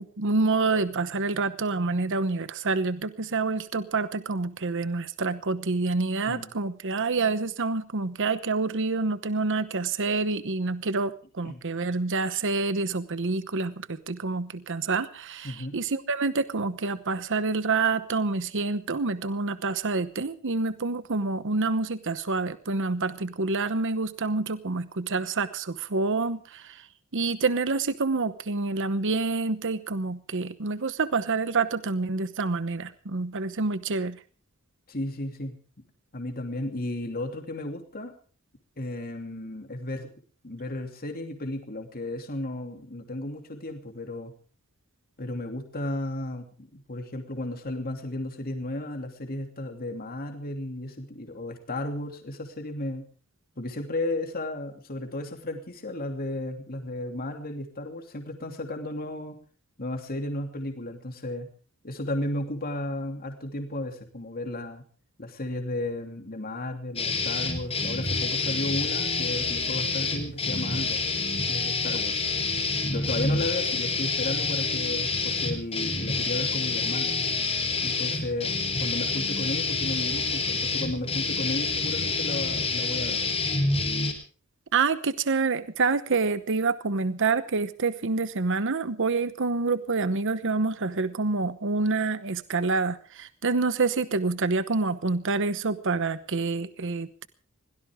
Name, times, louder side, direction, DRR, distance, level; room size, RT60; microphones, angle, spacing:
voice 1, 0.0-26.9 27.1-34.2 84.7-97.3, right 3 dB, 60° right, 13 dB, 1.0 m, -27 dB
voice 2, 15.4-15.8 34.9-35.6 36.1-38.1 38.8-40.1 40.4-44.3 45.2-53.1 53.6-59.4 59.8-61.5 61.8-64.8 65.2-71.0 71.5-72.2 72.9-77.1 77.8-78.5 78.8-83.2, left 1 dB, 45° left, 5 dB, 2.8 m, -34 dB
sound 1, 67.0-84.1, left 4 dB, 30° left, 4.0 m, -28 dB
22.5 x 17.5 x 3.6 m, 0.40 s
head